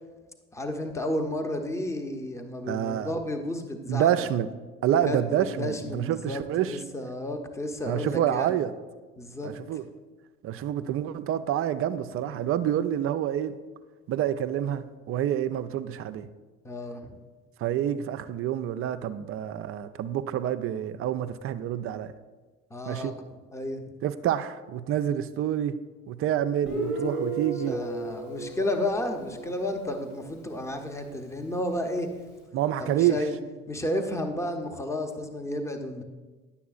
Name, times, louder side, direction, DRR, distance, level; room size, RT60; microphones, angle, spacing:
voice 1, 0.5-4.3 4.9-8.5 9.2-9.5 16.6-17.2 22.7-23.1 23.5-23.8 27.7-32.1 32.8-33.4 33.7-36.0, left 1 dB, 10° left, 5 dB, 0.7 m, -32 dB
voice 2, 2.7-3.1 3.9-4.5 4.8-6.8 7.9-8.7 9.4-9.9 10.4-13.6 14.1-16.3 17.6-22.1 22.9-23.1 24.0-25.8 26.1-27.8 32.5-33.2, right 11 dB, 35° right, 12 dB, 0.4 m, -28 dB
Guitar, 26.7-30.2, right 2 dB, 75° left, 1.9 m, -34 dB
10.0 x 6.9 x 2.4 m, 1.3 s
figure-of-eight pair, 60°, 38 cm